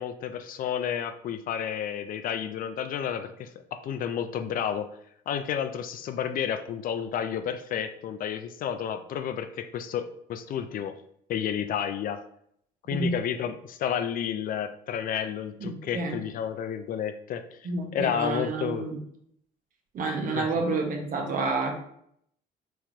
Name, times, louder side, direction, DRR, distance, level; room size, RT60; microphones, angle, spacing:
voice 1, 0.0-4.9 5.3-10.9 11.3-12.2 12.9-18.8 20.3-20.5, left 8 dB, 55° left, 9 dB, 0.5 m, -31 dB
voice 2, 15.6-16.2 17.6-19.0 19.9-21.8, right 3 dB, 55° right, 2 dB, 1.2 m, -29 dB
4.6 x 3.0 x 3.6 m, 0.68 s
cardioid pair, 110°, 17 cm